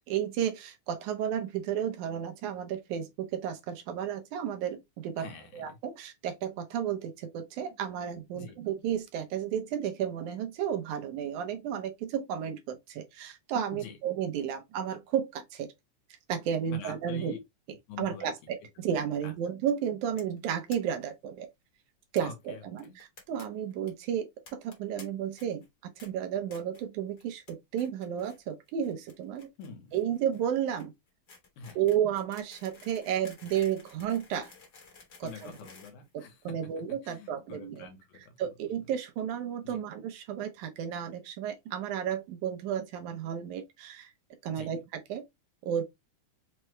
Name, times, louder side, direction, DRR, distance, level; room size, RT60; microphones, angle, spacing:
voice 1, 0.1-5.3 5.5-15.7 16.3-17.3 18.0-21.5 22.1-29.5 29.9-30.9 31.8-34.5 35.2-35.5 36.5-37.9 38.4-44.1 44.4-44.8 45.1-45.2 45.6-45.8, right 9 dB, 80° right, 2.2 m, -32 dB
voice 2, 5.2-5.8 8.3-8.6 13.7-14.0 16.7-17.4 17.9-18.3 19.2-19.3 22.2-23.0 29.6-30.0 31.6-31.8 35.1-36.6 37.0-38.3 39.6-39.8 44.5-44.7, left 5 dB, 80° left, 2.4 m, -45 dB
sound 1, 20.2-20.4 20.7-20.8 21.0-21.1 21.3-21.4 22.2-22.3 22.8-23.4 23.7-23.9 24.5-25.0 25.4-25.7 26.0-26.1 26.5-26.8 27.2-27.5 27.8-28.4 28.7-36.7, left 4 dB, 45° left, 1.4 m, -53 dB
5.6 x 2.2 x 3.0 m
omnidirectional pair, 3.5 m